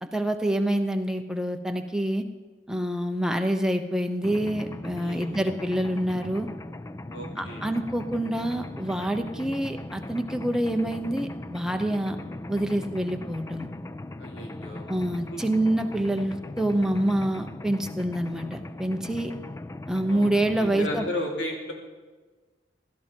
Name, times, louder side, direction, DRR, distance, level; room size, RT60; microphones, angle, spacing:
voice 1, 0.0-2.2 2.7-6.5 7.4-12.2 12.5-13.7 14.9-19.4 19.9-21.0, right 1 dB, 5° right, 5 dB, 0.8 m, -27 dB
Mechanisms, 4.2-21.1, left 2 dB, 15° left, 0.3 m, -39 dB
voice 2, 5.0-5.4 7.1-7.6 14.2-14.8 15.3-15.5 20.1-21.7, equal, 85° left, 0 dB, 2.8 m, -34 dB
16.5 x 12.5 x 4.5 m, 1.3 s
head